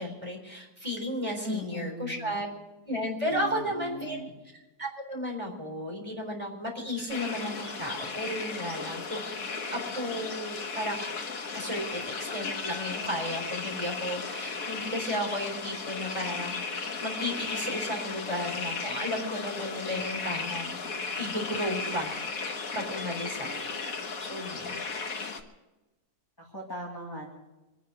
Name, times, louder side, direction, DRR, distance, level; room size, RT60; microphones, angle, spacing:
voice 1, 0.0-2.5 2.8-4.2 4.8-9.3 9.7-11.0 11.5-20.8 21.2-23.7 24.2-24.9, equal, 20° right, 0 dB, 4.2 m, -34 dB
voice 2, 1.4-2.4 3.3-4.4 26.4-27.3, equal, 15° left, -2 dB, 2.3 m, -38 dB
sound 1, 7.1-25.4, left 4 dB, 65° left, 1.8 m, -35 dB
25.5 x 10.0 x 4.9 m, 1.1 s
omnidirectional pair, 1.6 m